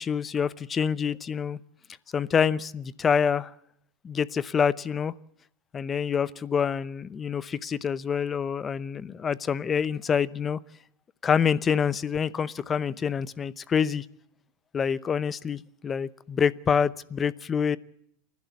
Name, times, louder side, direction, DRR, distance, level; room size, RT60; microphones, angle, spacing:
voice 1, 0.0-1.6 2.1-3.5 4.0-5.1 5.7-10.6 11.2-14.0 14.7-17.8, left 7 dB, 25° left, 19 dB, 0.7 m, -26 dB
29.0 x 12.0 x 8.3 m, 0.71 s
supercardioid pair, 135°, 0 cm